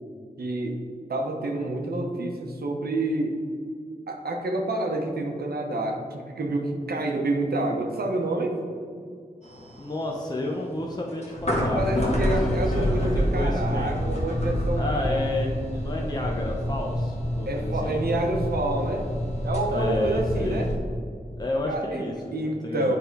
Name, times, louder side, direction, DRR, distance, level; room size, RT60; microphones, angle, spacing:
voice 1, 0.4-0.8 1.1-3.4 4.1-8.6 11.7-15.1 17.5-19.1 19.4-20.7 21.7-22.0 22.3-23.0, right 2 dB, 85° right, 2 dB, 0.8 m, -28 dB
sound 1, 9.4-20.8, equal, 45° left, 1.3 m, -28 dB
voice 2, 9.8-13.9 14.7-18.0 19.7-20.7 21.4-22.1 22.4-23.0, left 1 dB, 25° left, -1 dB, 0.8 m, -31 dB
8.1 x 3.5 x 4.5 m, 2.2 s
cardioid pair, 50°, 16 cm